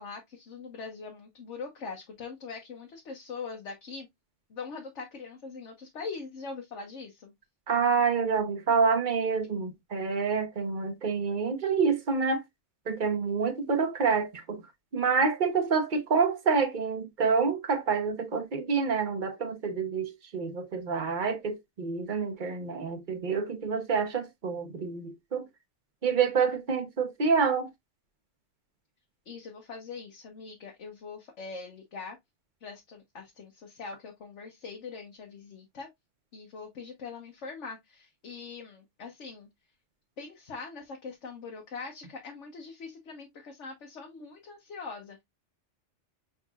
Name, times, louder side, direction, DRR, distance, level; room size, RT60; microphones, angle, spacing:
voice 1, 0.0-4.1 4.5-7.3 29.2-32.2 32.6-35.9 36.3-39.5 40.2-45.2, left 4 dB, 80° left, 1.3 m, -42 dB
voice 2, 7.7-12.4 12.9-14.6 14.9-25.4 26.0-27.7, right 5 dB, 45° right, 1.0 m, -27 dB
5.5 x 3.8 x 2.3 m
omnidirectional pair, 1.2 m